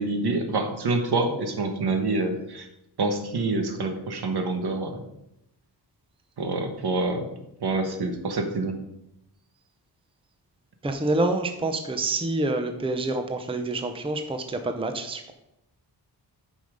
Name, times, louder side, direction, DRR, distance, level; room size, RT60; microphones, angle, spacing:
voice 1, 0.0-2.7 3.0-5.0 6.4-7.3 7.6-8.7, right 3 dB, 65° right, 5 dB, 1.3 m, -26 dB
voice 2, 10.8-15.3, right 2 dB, 15° right, 6 dB, 0.6 m, -27 dB
9.6 x 5.6 x 5.1 m, 0.83 s
wide cardioid pair, 155°, 42 cm